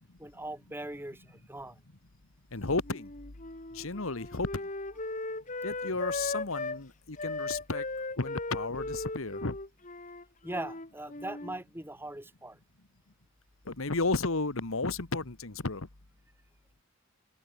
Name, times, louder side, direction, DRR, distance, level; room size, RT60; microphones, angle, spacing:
voice 1, 0.2-1.8 10.4-12.6, right 1 dB, 10° right, 3.1 m, -40 dB
voice 2, 2.5-3.1 3.7-4.6 5.6-7.8 8.2-9.6 13.7-15.9, left 3 dB, 65° left, 1.6 m, -33 dB
Wind instrument woodwind instrument, 2.8-6.8 7.2-11.6, left 2 dB, 35° left, 3.4 m, -37 dB
open air
head